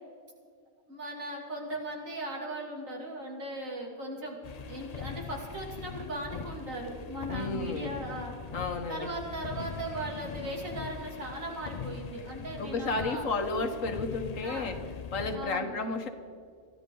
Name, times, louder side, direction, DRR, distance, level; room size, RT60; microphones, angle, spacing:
voice 1, 0.9-8.3 8.9-13.2 14.4-14.7 15.3-15.7, right 1 dB, 70° right, -2 dB, 3.2 m, -38 dB
sound 1, 4.4-15.4, left 6 dB, 45° left, 0.5 m, -41 dB
voice 2, 7.3-7.9 8.5-9.1 12.6-14.8 15.1-16.1, left 3 dB, 70° left, 6 dB, 1.7 m, -32 dB
23.0 x 14.0 x 3.9 m, 2.2 s
omnidirectional pair, 1.4 m